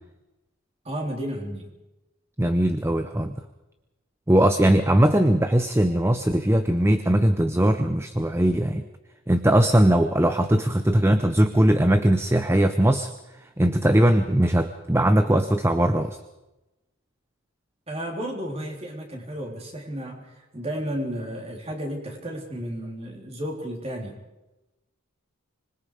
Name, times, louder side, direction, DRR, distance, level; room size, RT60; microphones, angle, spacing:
voice 1, 0.8-1.7 17.9-24.2, equal, 30° right, 0 dB, 3.8 m, -33 dB
voice 2, 2.4-3.4 4.3-8.8 9.3-13.1 13.6-16.2, right 1 dB, 10° right, 9 dB, 0.7 m, -20 dB
25.5 x 21.5 x 5.0 m, 1.0 s
head